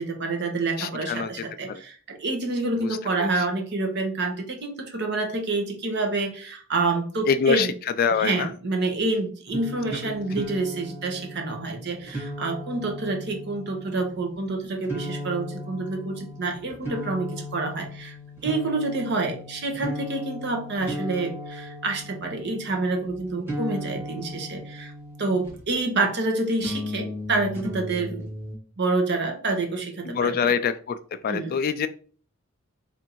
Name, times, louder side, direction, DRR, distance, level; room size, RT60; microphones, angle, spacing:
voice 1, 0.0-7.7 8.0-18.1 18.4-24.9 25.2-28.3 28.8-30.5 31.3-31.6, right 3 dB, 55° right, 3 dB, 0.9 m, -28 dB
voice 2, 0.8-1.3 1.7-1.8 2.8-2.9 3.2-3.3 7.3-7.7 8.0-8.5 30.1-31.0 31.2-31.9, left 6 dB, 45° left, 12 dB, 0.3 m, -24 dB
sound 1, 9.5-25.8 26.6-28.6, left 1 dB, 10° right, 1.6 m, -36 dB
3.5 x 2.5 x 4.4 m, 0.42 s
head